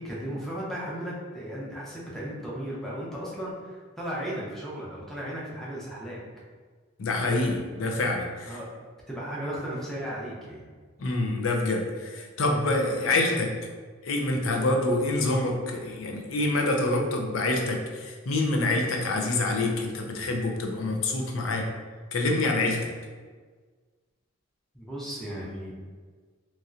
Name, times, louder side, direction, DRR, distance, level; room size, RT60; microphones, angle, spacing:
voice 1, 0.0-6.2 8.4-8.8 9.1-10.7 24.7-25.7, equal, ahead, -6 dB, 0.6 m, -35 dB
voice 2, 7.0-8.6 11.0-13.6 14.0-21.7 22.1-22.9, left 2 dB, 85° left, 2 dB, 0.5 m, -26 dB
3.0 x 2.7 x 2.4 m, 1.5 s
head